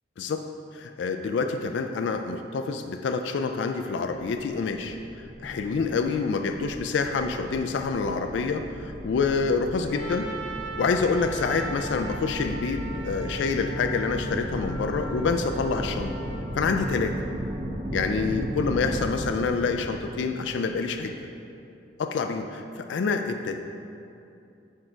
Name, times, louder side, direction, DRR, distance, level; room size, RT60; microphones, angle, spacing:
voice 1, 0.7-10.3 10.8-16.1 16.6-17.2 17.9-21.1 22.0-23.6, left 4 dB, 75° left, 6 dB, 0.3 m, -27 dB
sound 1, 4.2-21.1, right 1 dB, 25° right, 0.6 m, -36 dB
Trumpet, 9.9-16.5, right 2 dB, 85° right, 0.7 m, -40 dB
6.4 x 4.5 x 4.9 m, 2.7 s
head